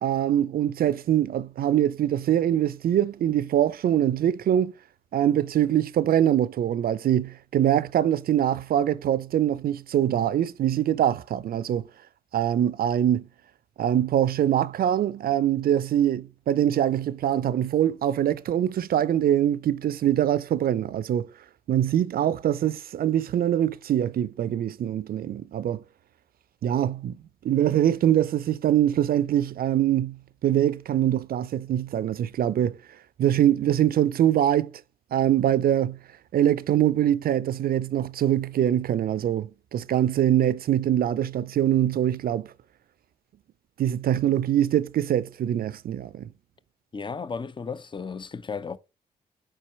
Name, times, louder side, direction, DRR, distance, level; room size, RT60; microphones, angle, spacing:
voice 1, 0.0-4.7 5.1-11.9 12.3-13.3 13.8-21.3 21.7-25.8 26.6-27.2 27.4-32.8 33.2-34.7 35.1-36.0 36.3-42.5 43.8-46.3, right 11 dB, 60° right, 0.5 m, -23 dB
voice 2, 46.9-48.8, left 5 dB, 30° left, 0.6 m, -34 dB
4.6 x 4.4 x 4.6 m
hypercardioid pair, 45°, 18 cm